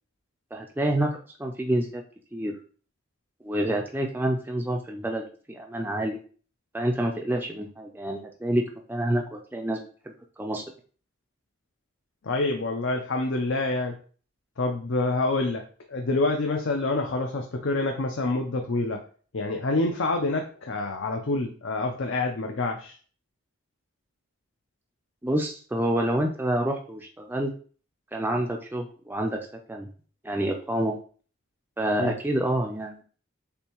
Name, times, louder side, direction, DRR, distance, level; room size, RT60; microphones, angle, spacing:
voice 1, 0.5-1.1 1.4-2.0 2.3-2.5 3.4-6.2 6.7-9.8 10.1-10.6 25.2-27.5 28.1-29.4 29.7-29.9 30.2-30.9 31.8-33.0, right 1 dB, 10° right, 1 dB, 0.4 m, -28 dB
voice 2, 12.2-13.9 14.6-15.6 15.9-19.0 19.3-22.9 32.0-32.1, left 2 dB, 65° left, 3 dB, 0.5 m, -27 dB
6.7 x 2.6 x 3.0 m, 0.42 s
head